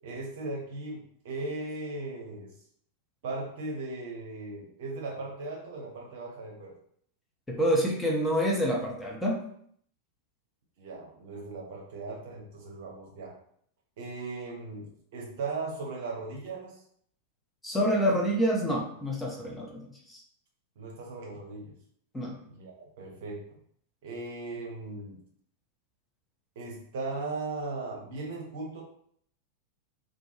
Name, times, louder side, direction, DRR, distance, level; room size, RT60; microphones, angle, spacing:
voice 1, 0.0-2.5 3.2-6.8 10.8-13.3 14.0-16.8 20.8-21.8 22.5-23.6 24.0-25.2 26.6-28.8, right 3 dB, 55° right, -1 dB, 0.7 m, -38 dB
voice 2, 7.5-9.4 17.6-20.2 22.1-22.4, equal, 10° left, -2 dB, 0.6 m, -27 dB
2.3 x 2.2 x 2.9 m, 0.65 s
figure-of-eight pair, 90°, 0 cm